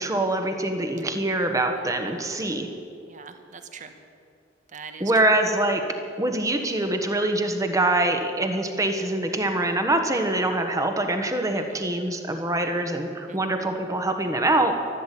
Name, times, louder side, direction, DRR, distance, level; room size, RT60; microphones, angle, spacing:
voice 1, 0.0-2.7 5.0-5.8 6.2-14.7, right 2 dB, 20° right, 5 dB, 1.3 m, -24 dB
voice 2, 1.8-2.5 3.1-4.0 4.7-5.3 11.5-11.8 13.3-13.5, right 5 dB, 40° right, 7 dB, 1.2 m, -43 dB
12.5 x 12.5 x 8.4 m, 2.4 s
head